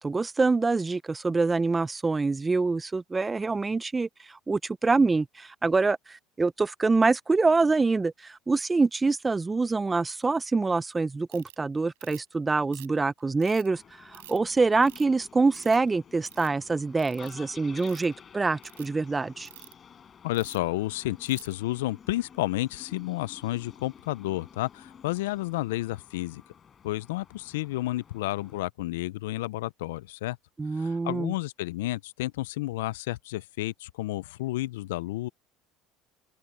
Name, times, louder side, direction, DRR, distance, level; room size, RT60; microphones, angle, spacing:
voice 1, 0.0-19.5 30.6-31.3, right 3 dB, 20° right, 0.7 m, -25 dB
Ratchet pawl, 11.3-11.6 12.0-12.3 12.7-13.7 14.1-14.4 14.8-15.2 15.5-15.9 16.2-16.5 17.0-17.3 17.7-18.1 18.6-18.9 19.5-19.7 20.3-20.7 21.3-21.5, right 17 dB, 85° right, 5.1 m, -48 dB
sound 1, 13.7-28.6, left 7 dB, 40° left, 4.7 m, -52 dB
voice 2, 20.2-26.4 26.8-30.4 30.8-35.3, left 17 dB, 80° left, 0.6 m, -31 dB
open air
hypercardioid pair, 75°, 0 cm